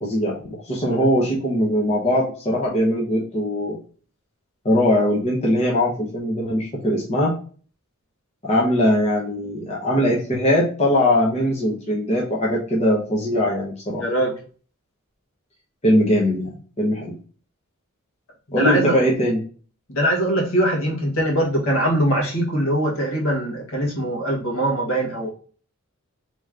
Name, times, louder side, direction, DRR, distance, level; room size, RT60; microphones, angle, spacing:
voice 1, 0.0-3.8 4.6-7.3 8.4-14.0 15.8-17.1 18.5-19.4, left 1 dB, 30° left, -4 dB, 0.9 m, -21 dB
voice 2, 14.0-14.3 18.5-19.1 19.9-25.3, right 1 dB, 65° left, -2 dB, 1.6 m, -22 dB
3.3 x 3.0 x 3.6 m, 0.41 s
head